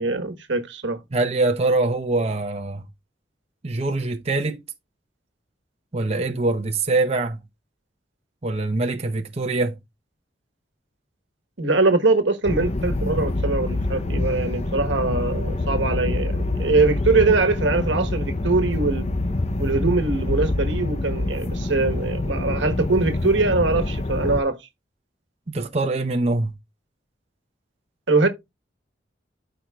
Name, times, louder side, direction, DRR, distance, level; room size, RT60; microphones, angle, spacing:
voice 1, 0.0-1.0 11.6-19.1 19.6-24.6 28.1-28.3, right 3 dB, 85° right, 1.3 m, -22 dB
voice 2, 1.1-2.9 3.6-4.6 5.9-7.4 8.4-9.8 25.5-26.5, right 2 dB, 35° right, 0.8 m, -23 dB
sound 1, 12.5-24.4, left 2 dB, 35° left, 0.7 m, -26 dB
13.0 x 4.7 x 2.3 m
head